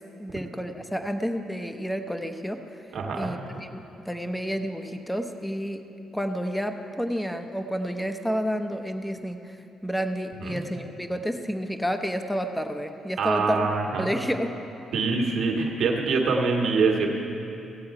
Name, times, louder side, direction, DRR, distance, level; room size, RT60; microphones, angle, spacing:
voice 1, 0.2-2.6 3.2-5.9 6.1-13.7 14.0-14.6, equal, 5° left, 7 dB, 0.7 m, -30 dB
voice 2, 2.9-3.3 10.4-10.6 13.2-14.1 14.9-17.1, right 4 dB, 70° right, 0 dB, 1.5 m, -24 dB
16.5 x 7.8 x 4.8 m, 2.9 s
cardioid pair, 90°, 0 cm